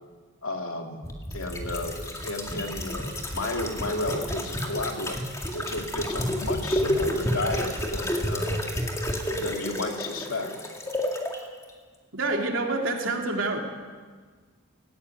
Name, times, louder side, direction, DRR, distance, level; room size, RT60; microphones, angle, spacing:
voice 1, 0.4-1.0 1.3-5.2 5.5-8.6 9.3-10.5, left 2 dB, 85° left, 3 dB, 2.6 m, -32 dB
sound 1, 1.0-11.4 11.7-11.8, left 1 dB, 15° left, 2.0 m, -30 dB
voice 2, 12.1-13.6, right 2 dB, 70° right, 1 dB, 3.3 m, -27 dB
17.0 x 17.0 x 9.5 m, 1.5 s
head